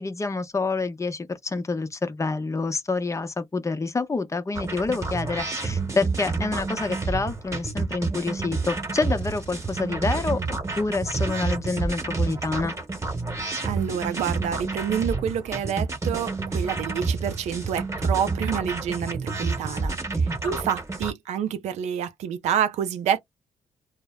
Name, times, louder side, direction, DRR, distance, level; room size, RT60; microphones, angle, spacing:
voice 1, 0.0-12.8 20.4-20.5, left 3 dB, 25° left, 0.7 m, -27 dB
sound 1, 4.5-21.1, right 3 dB, 25° right, 1.1 m, -29 dB
voice 2, 13.6-23.2, right 9 dB, 80° right, 0.5 m, -28 dB
2.0 x 2.0 x 3.5 m
supercardioid pair, 55°, 12 cm